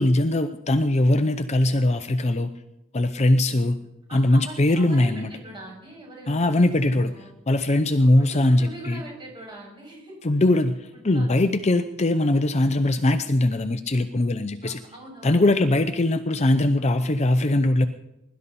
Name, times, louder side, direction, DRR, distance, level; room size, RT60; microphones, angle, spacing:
voice 1, 0.0-2.5 2.9-3.8 4.1-5.3 6.3-7.1 7.5-9.0 10.2-14.8 15.2-17.9, left 1 dB, 30° left, 9 dB, 0.6 m, -21 dB
voice 2, 4.1-7.3 8.0-10.4 10.9-11.6 14.6-15.7, right 1 dB, 25° right, -2 dB, 6.6 m, -43 dB
21.5 x 12.5 x 4.2 m, 0.90 s
head